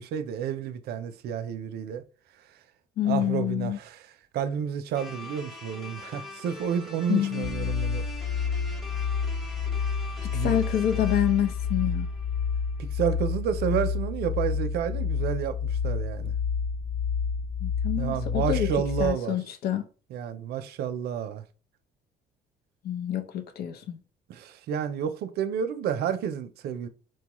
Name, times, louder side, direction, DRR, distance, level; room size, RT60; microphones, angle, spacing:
voice 1, 0.0-2.0 3.0-4.1 4.3-8.0 10.3-10.6 12.8-16.3 18.0-19.4 20.1-21.4 24.3-26.9, right 8 dB, 70° right, 0.5 m, -30 dB
voice 2, 3.0-3.8 7.1-7.7 10.2-12.1 17.6-18.7 19.0-19.9 22.8-24.0, left 10 dB, 70° left, 0.7 m, -27 dB
sound 1, 4.9-13.1, left 2 dB, ahead, 0.9 m, -43 dB
sound 2, 7.4-19.1, left 6 dB, 30° left, 0.4 m, -29 dB
4.5 x 2.3 x 3.0 m
cardioid pair, 110°, 17 cm